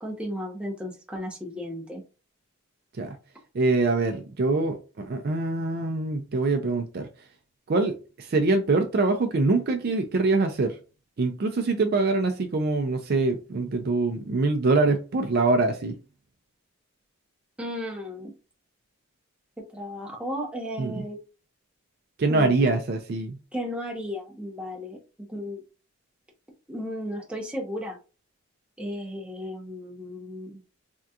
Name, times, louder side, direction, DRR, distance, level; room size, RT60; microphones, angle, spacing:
voice 1, 0.0-2.0 17.6-18.3 19.7-21.2 22.3-22.8 23.5-25.6 26.7-28.0 28.8-30.6, equal, 5° right, 0.7 m, -34 dB
voice 2, 3.5-7.1 7.7-10.8 11.2-15.9 20.8-21.0 22.2-23.4, right 3 dB, 45° right, 0.4 m, -24 dB
3.5 x 2.3 x 2.7 m
head